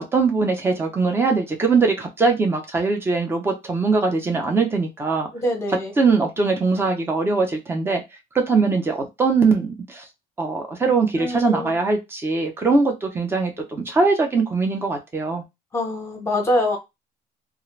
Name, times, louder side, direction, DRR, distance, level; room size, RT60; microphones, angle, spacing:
voice 1, 0.0-5.3 6.0-8.0 8.3-10.0 10.4-15.4, right 4 dB, 15° right, 0.5 m, -21 dB
voice 2, 5.3-5.9 11.2-11.7 15.7-16.8, left 1 dB, 15° left, 0.8 m, -24 dB
2.4 x 2.1 x 3.1 m
cardioid pair, 170°, 16 cm